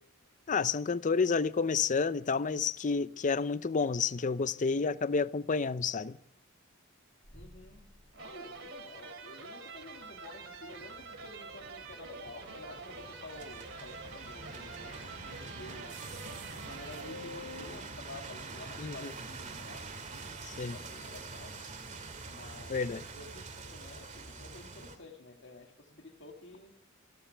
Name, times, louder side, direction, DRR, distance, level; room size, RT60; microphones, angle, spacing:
voice 1, 0.5-6.2 18.8-19.0 20.5-20.8 22.7-23.0, left 5 dB, 40° left, 0.5 m, -30 dB
sound 1, 7.2-9.5, equal, 5° right, 2.7 m, -58 dB
voice 2, 7.3-16.0 16.6-21.6 22.3-22.9 23.1-26.8, left 3 dB, 60° left, 2.1 m, -51 dB
sound 2, 8.1-18.1, right 3 dB, 65° right, 2.9 m, -47 dB
sound 3, 9.7-25.0, right 3 dB, 40° right, 2.3 m, -46 dB
28.0 x 13.0 x 3.4 m
head